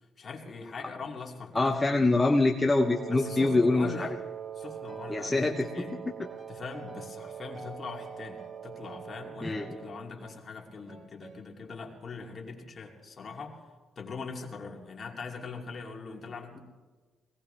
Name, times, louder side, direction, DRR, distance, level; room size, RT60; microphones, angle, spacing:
voice 1, 0.2-2.0 3.1-4.1 4.6-6.0 6.5-13.6 14.0-16.6, left 4 dB, 40° left, 0 dB, 2.8 m, -41 dB
voice 2, 1.5-4.1 5.1-5.8 9.4-9.8, left 2 dB, 15° left, 2 dB, 0.9 m, -25 dB
Wind instrument woodwind instrument, 2.8-10.1, right 8 dB, 75° right, 1.3 m, -42 dB
sound 1, 4.6-5.2 5.5-9.8 10.2-10.5 10.9-11.5, right 3 dB, 55° right, 2.7 m, -50 dB
21.0 x 17.5 x 3.4 m, 1.4 s
cardioid pair, 90°, 0 cm